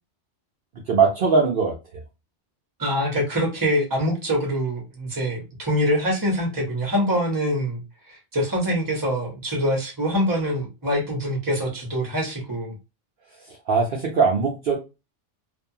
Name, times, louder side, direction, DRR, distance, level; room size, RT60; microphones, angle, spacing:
voice 1, 0.9-1.8 13.5-14.8, right 5 dB, 60° right, 0.7 m, -20 dB
voice 2, 2.8-7.8 8.1-12.7, equal, 20° right, 0.9 m, -24 dB
2.6 x 2.3 x 2.6 m
omnidirectional pair, 1.2 m